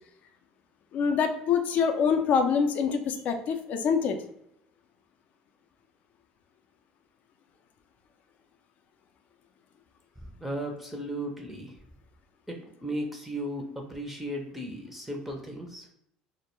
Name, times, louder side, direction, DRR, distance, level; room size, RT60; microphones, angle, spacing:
voice 1, 0.9-4.2, left 6 dB, 55° left, 5 dB, 0.4 m, -25 dB
voice 2, 10.4-11.7 12.5-15.9, right 1 dB, 5° right, 1 dB, 0.5 m, -35 dB
2.2 x 2.1 x 2.9 m, 0.74 s
supercardioid pair, 85°, 3 cm